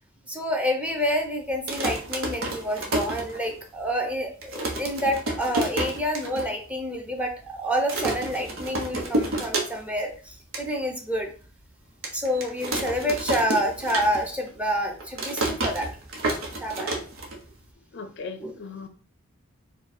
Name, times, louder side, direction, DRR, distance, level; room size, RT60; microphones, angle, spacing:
voice 1, 0.3-11.3 12.1-15.9 16.6-16.9 18.4-18.5, equal, 5° right, 2 dB, 0.8 m, -28 dB
sound 1, 1.5-3.8 4.1-4.2 4.4-6.5 6.8-6.9 7.1-7.5 7.9-10.0 10.3-10.7 11.2-11.3 12.0-14.5 14.7-17.7, right 2 dB, 75° right, 1.1 m, -30 dB
voice 2, 17.9-18.9, left 4 dB, 60° left, 8 dB, 0.5 m, -38 dB
4.6 x 2.4 x 4.3 m, 0.41 s
head